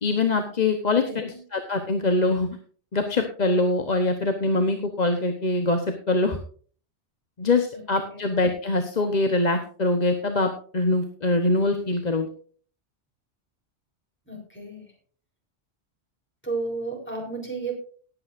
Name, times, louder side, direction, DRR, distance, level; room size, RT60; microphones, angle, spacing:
voice 1, 0.0-2.5 2.9-6.4 7.4-12.3, left 2 dB, 40° left, 5 dB, 1.1 m, -23 dB
voice 2, 14.3-14.9 16.4-17.7, right 3 dB, 10° left, 0 dB, 4.1 m, -32 dB
18.5 x 9.0 x 2.6 m, 0.43 s
omnidirectional pair, 1.2 m